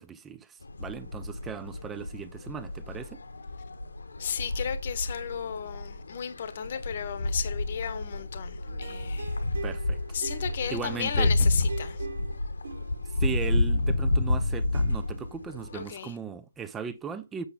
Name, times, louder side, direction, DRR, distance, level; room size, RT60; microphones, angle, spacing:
voice 1, 0.0-3.2 9.6-10.0 10.7-11.3 13.2-17.5, right 6 dB, 10° right, 0.5 m, -37 dB
sound 1, 0.6-15.9, left 2 dB, 75° left, 1.2 m, -30 dB
voice 2, 4.2-9.4 10.1-12.1 15.7-16.1, left 8 dB, 40° left, 1.0 m, -34 dB
sound 2, 8.7-15.4, right 4 dB, 60° right, 0.9 m, -43 dB
7.9 x 5.6 x 3.5 m
figure-of-eight pair, 155°, 0 cm